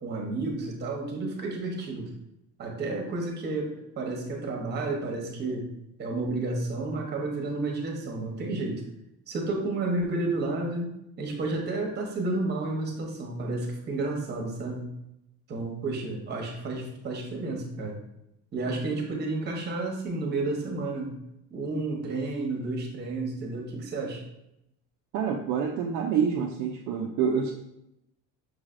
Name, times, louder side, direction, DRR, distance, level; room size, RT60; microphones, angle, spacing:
voice 1, 0.0-2.1 2.6-5.7 6.0-8.8 9.3-14.8 15.5-18.0 18.5-21.1 21.5-24.2, right 2 dB, 30° right, 0 dB, 0.9 m, -31 dB
voice 2, 25.1-27.5, right 7 dB, 55° right, 1 dB, 0.5 m, -27 dB
6.1 x 3.2 x 2.5 m, 0.82 s
cardioid pair, 165°, 35 cm